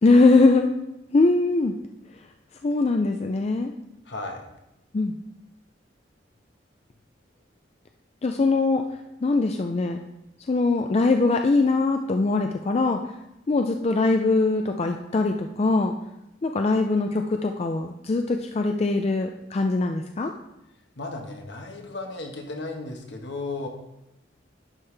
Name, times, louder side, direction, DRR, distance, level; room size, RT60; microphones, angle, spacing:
voice 1, 0.0-0.7 1.1-1.7 2.6-3.7 4.9-5.2 8.2-8.8 9.2-10.0 10.5-13.0 13.5-15.9 16.4-20.3, left 3 dB, 35° left, 5 dB, 0.4 m, -22 dB
voice 2, 4.0-4.4 21.0-23.7, left 2 dB, 70° left, 2 dB, 1.3 m, -34 dB
11.0 x 5.6 x 3.3 m, 0.89 s
head